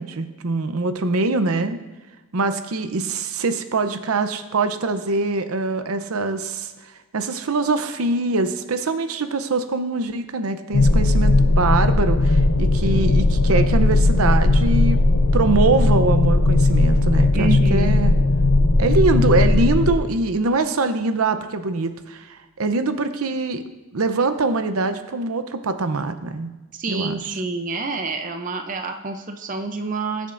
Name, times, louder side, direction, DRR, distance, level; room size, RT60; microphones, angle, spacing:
voice 1, 0.0-1.8 2.3-6.7 7.1-15.0 15.3-18.1 18.8-23.6 23.9-26.5 26.9-27.4, right 3 dB, 80° right, 9 dB, 0.7 m, -23 dB
sound 1, 10.7-20.0, left 2 dB, 70° left, 0.7 m, -17 dB
voice 2, 17.3-17.9 26.7-30.3, right 3 dB, 35° right, 5 dB, 0.6 m, -27 dB
19.5 x 7.3 x 2.6 m, 1.2 s
head